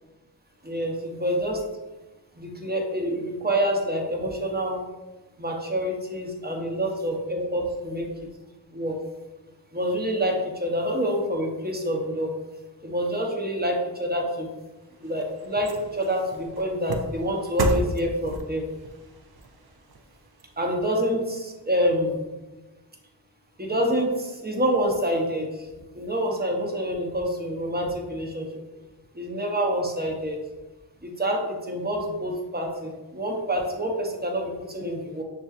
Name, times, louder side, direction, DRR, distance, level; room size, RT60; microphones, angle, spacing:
voice 1, 0.6-1.6 2.3-4.8 5.4-8.3 8.7-9.0 9.7-12.3 12.8-14.5 15.0-18.7 20.6-22.2 23.6-28.5 29.1-30.4 31.0-35.2, equal, 20° right, 0 dB, 0.7 m, -27 dB
sound 1, 14.6-21.1 21.5-21.6, right 2 dB, 55° right, 0.5 m, -34 dB
5.9 x 2.7 x 2.4 m, 1.1 s
wide cardioid pair, 55°, 46 cm